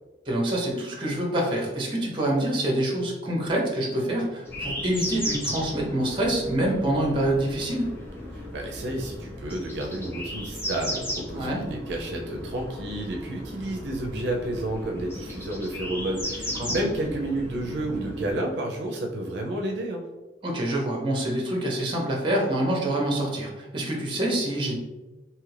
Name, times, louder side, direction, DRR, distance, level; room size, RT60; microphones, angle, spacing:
voice 1, 0.3-7.9 11.4-11.6 16.5-16.7 20.4-24.7, right 1 dB, 25° right, -1 dB, 0.7 m, -26 dB
sound 1, 4.4-18.3, left 1 dB, 15° left, 0.6 m, -36 dB
sound 2, 6.2-10.2 10.5-10.9, right 2 dB, 70° left, 1.3 m, -44 dB
voice 2, 8.3-20.0, right 1 dB, 70° right, 0 dB, 0.5 m, -31 dB
2.8 x 2.4 x 3.2 m, 1.1 s
head